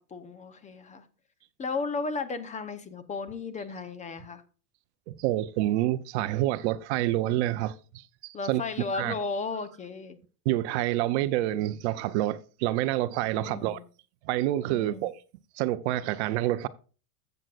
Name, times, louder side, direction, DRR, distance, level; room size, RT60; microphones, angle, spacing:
voice 1, 0.1-1.0 1.6-4.4 8.3-10.2 13.3-13.8 14.7-15.1, left 4 dB, 15° left, 0.7 m, -34 dB
voice 2, 5.1-8.6 8.9-9.1 10.5-13.8 14.3-15.1 15.6-16.7, right 15 dB, 50° right, 0.6 m, -28 dB
13.5 x 7.8 x 2.4 m
supercardioid pair, 130°, 45 cm